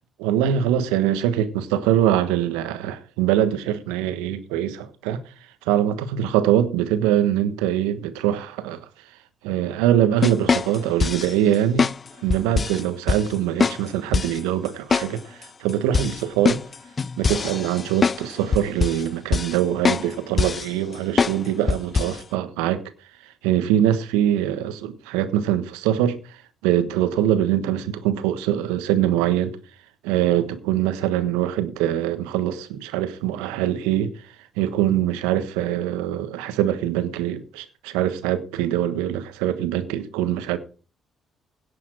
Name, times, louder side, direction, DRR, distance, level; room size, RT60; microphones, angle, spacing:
voice 1, 0.2-5.3 5.6-8.9 9.4-11.9 12.2-16.6 17.2-22.8 23.2-29.6 30.0-40.6, right 11 dB, 85° right, 1.3 m, -23 dB
sound 1, 10.2-11.3 11.8-12.0 12.3-12.8 13.1-13.2 13.6-13.8 14.1-14.4 14.9-15.1 15.4-15.5 15.9-18.2 18.5-19.0 19.3-19.6 19.8-20.1 20.4-20.7 21.2-21.4 21.7-22.2, left 5 dB, 40° left, 0.5 m, -22 dB
17.0 x 6.9 x 4.7 m
hypercardioid pair, 50°, 0 cm